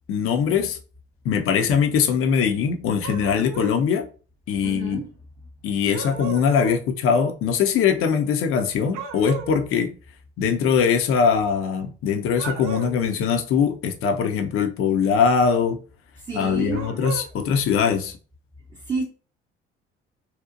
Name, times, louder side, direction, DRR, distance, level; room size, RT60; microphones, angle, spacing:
voice 1, 0.1-0.8 1.2-4.1 4.5-5.0 5.6-10.0 10.4-15.8 16.3-18.1, left 6 dB, 45° left, 0.5 m, -21 dB
sound 1, 3.0-3.8 5.9-6.8 8.9-9.6 12.3-13.1 16.7-17.3, right 7 dB, 65° right, 0.5 m, -34 dB
voice 2, 4.6-5.1 16.2-16.9 18.7-19.0, right 4 dB, 15° right, 0.6 m, -30 dB
2.7 x 2.0 x 2.5 m
figure-of-eight pair, 50°, 31 cm